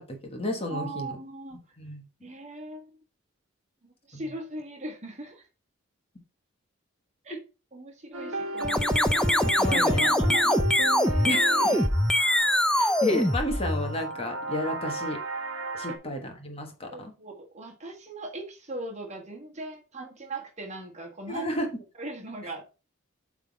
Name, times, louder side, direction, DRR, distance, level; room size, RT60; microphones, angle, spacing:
voice 1, 0.0-1.2 1.8-2.0 4.1-4.2 9.4-10.1 11.2-11.8 12.7-15.2 15.7-17.1 21.3-21.7, left 1 dB, 30° left, 3 dB, 1.4 m, -32 dB
voice 2, 0.7-1.6 2.2-3.0 4.1-5.5 7.2-7.4 7.7-8.9 9.2-10.8 12.8-13.0 15.9-16.0 16.9-21.5 22.0-22.8, right 2 dB, 35° right, 2 dB, 1.6 m, -39 dB
sound 1, 8.1-16.0, right 2 dB, 85° right, 1.3 m, -34 dB
sound 2, 8.6-14.1, left 1 dB, 5° left, 0.4 m, -23 dB
8.1 x 3.8 x 4.7 m, 0.33 s
head